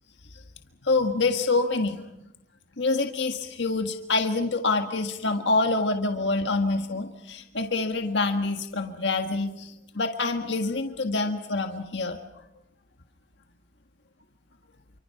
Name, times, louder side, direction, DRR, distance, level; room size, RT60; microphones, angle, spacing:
voice 1, 0.8-2.0 2.8-12.2, left 3 dB, 70° left, 5 dB, 1.6 m, -26 dB
28.0 x 25.0 x 5.9 m, 0.88 s
head